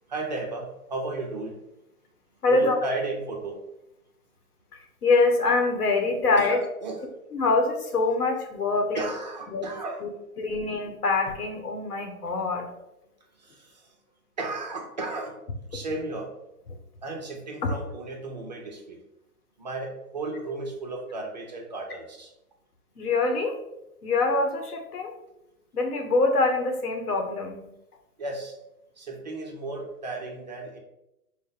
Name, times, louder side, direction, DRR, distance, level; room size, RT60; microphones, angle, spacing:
voice 1, 0.1-1.5 2.5-3.6 6.4-7.0 8.9-10.0 13.3-14.0 14.4-15.4 15.7-16.3 17.0-19.0 19.6-22.3 28.2-28.6 29.0-30.8, right 2 dB, 30° right, 0 dB, 0.5 m, -34 dB
voice 2, 2.4-3.0 4.7-6.6 7.3-9.0 9.5-9.7 10.0-10.1 10.4-12.7 17.6-17.7 23.0-23.6 24.0-25.1 25.7-27.7, left 3 dB, 90° left, 3 dB, 1.1 m, -24 dB
4.8 x 2.1 x 3.8 m, 0.88 s
hypercardioid pair, 150°, 44 cm